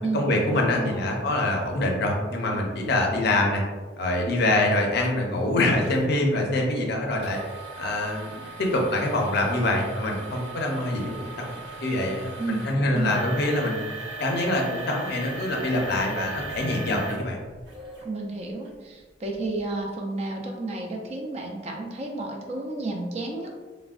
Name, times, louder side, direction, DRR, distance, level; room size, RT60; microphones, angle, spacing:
voice 1, 0.1-3.6 4.0-7.4 7.8-11.5 11.8-13.8 14.2-17.4, left 1 dB, 60° left, 0 dB, 0.5 m, -25 dB
voice 2, 0.8-1.1 12.4-13.2 18.0-23.5, right 2 dB, 35° right, 1 dB, 0.4 m, -31 dB
sound 1, 5.0-5.1 5.8-6.1 7.2-18.1 18.6-18.7 19.3-19.5, right 3 dB, 85° right, 1.0 m, -38 dB
3.4 x 2.1 x 2.3 m, 1.3 s
head